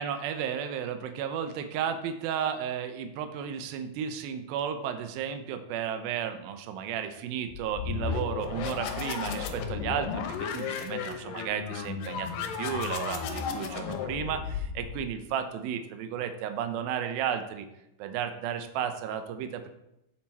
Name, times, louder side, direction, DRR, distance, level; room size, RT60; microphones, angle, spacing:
voice 1, 0.0-10.2 10.5-17.7 18.0-19.7, right 8 dB, 80° right, 8 dB, 2.6 m, -33 dB
sound 1, 7.5-15.2, left 6 dB, 75° left, 2.6 m, -34 dB
9.2 x 7.5 x 4.3 m, 0.86 s
omnidirectional pair, 4.2 m